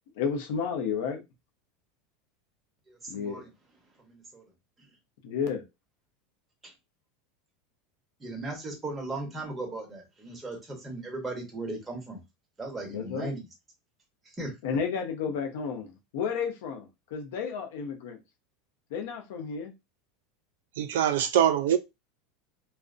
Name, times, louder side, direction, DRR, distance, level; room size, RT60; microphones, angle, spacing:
voice 1, 0.2-1.2 3.1-3.4 5.2-5.6 12.9-13.3 14.6-18.2 18.9-19.7, left 6 dB, 75° left, 0.6 m, -32 dB
voice 2, 2.9-3.5 4.0-4.4 4.8-4.9 6.6-6.7 8.2-12.2 12.6-13.4 14.2-14.6, right 2 dB, 15° right, 0.9 m, -37 dB
voice 3, 20.8-21.8, right 10 dB, 85° right, 0.4 m, -23 dB
2.5 x 2.0 x 2.4 m
supercardioid pair, 130°, 0 cm